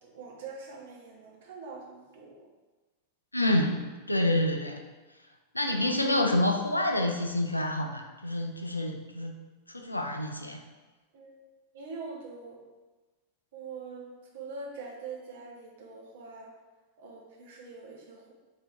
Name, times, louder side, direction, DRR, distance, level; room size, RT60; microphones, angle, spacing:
voice 1, 0.0-2.5 11.1-12.6 13.5-16.5 17.0-18.3, right 4 dB, 55° right, -1 dB, 0.9 m, -44 dB
voice 2, 3.3-3.8 4.1-4.8 5.5-9.4 9.7-10.6, left 1 dB, 85° left, 3 dB, 0.4 m, -27 dB
3.3 x 2.7 x 4.2 m, 1.2 s
figure-of-eight pair, 90°, 0 cm